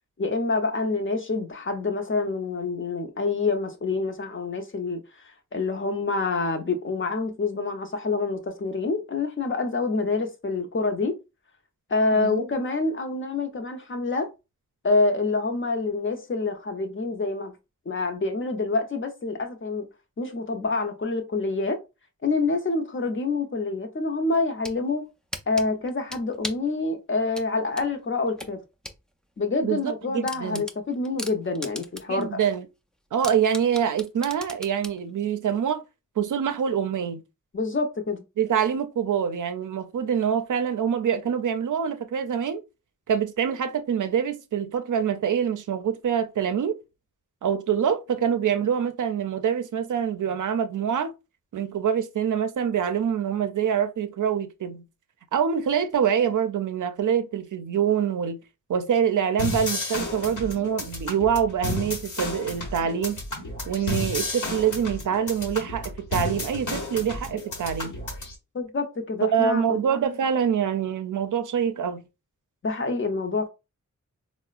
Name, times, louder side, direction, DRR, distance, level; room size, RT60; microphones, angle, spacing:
voice 1, 0.2-11.2 11.9-14.3 14.8-17.5 17.9-19.9 20.2-21.8 22.2-25.1 25.5-28.6 29.4-32.4 37.5-38.2 68.5-69.6 72.6-73.5, left 3 dB, 40° left, 0.6 m, -27 dB
voice 2, 12.1-12.5 29.6-30.6 32.1-32.7 33.1-35.8 36.2-37.2 38.4-42.6 43.1-46.8 47.4-51.1 51.5-54.8 55.3-58.4 58.7-63.2 63.7-67.9 69.2-72.0, right 8 dB, 75° right, 0.5 m, -25 dB
sound 1, 24.3-24.8 25.3-26.7 27.3-29.0 29.4-29.5 29.8-29.9 30.3-32.2 32.6-32.7 33.2-35.0, equal, 5° left, 0.3 m, -37 dB
sound 2, 59.4-68.4, left 2 dB, 70° left, 1.0 m, -32 dB
3.8 x 2.0 x 2.4 m
wide cardioid pair, 95°, 31 cm